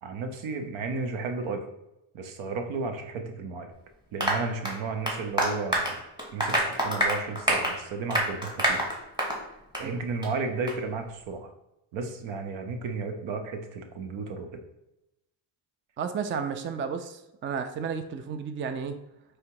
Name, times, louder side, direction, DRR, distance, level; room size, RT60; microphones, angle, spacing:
voice 1, 0.0-1.7 2.1-3.7 4.1-6.0 6.3-8.9 9.8-11.5 11.9-14.6, right 4 dB, 75° right, 6 dB, 0.9 m, -33 dB
Applause, 4.2-9.4 9.7-9.9 10.2-10.3 10.7-10.8, right 1 dB, 10° right, 1.5 m, -27 dB
voice 2, 16.0-19.0, right 6 dB, 25° right, 8 dB, 0.4 m, -32 dB
4.8 x 2.2 x 4.5 m, 0.91 s
cardioid pair, 80°, 48 cm